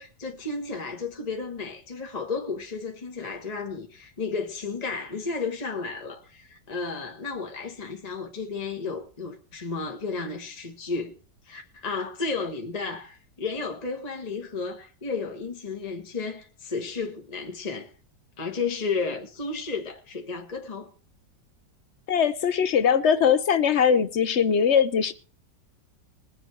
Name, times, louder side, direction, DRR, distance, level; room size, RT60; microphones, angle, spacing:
voice 1, 0.0-11.2 11.4-17.9 18.4-20.9, left 4 dB, 25° left, 1.3 m, -33 dB
voice 2, 22.1-25.1, left 7 dB, 50° left, 0.8 m, -21 dB
21.5 x 7.8 x 4.5 m
omnidirectional pair, 2.0 m